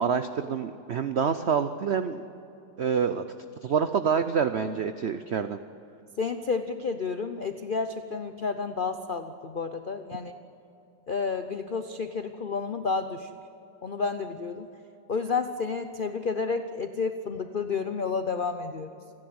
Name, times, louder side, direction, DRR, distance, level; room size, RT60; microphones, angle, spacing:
voice 1, 0.0-2.2 2.8-3.2 3.6-5.6, right 6 dB, 90° right, 10 dB, 0.5 m, -27 dB
voice 2, 6.2-10.3 11.1-13.3 13.8-14.7 15.1-18.9, left 4 dB, 90° left, 8 dB, 0.4 m, -30 dB
28.0 x 11.0 x 9.5 m, 2.9 s
omnidirectional pair, 2.0 m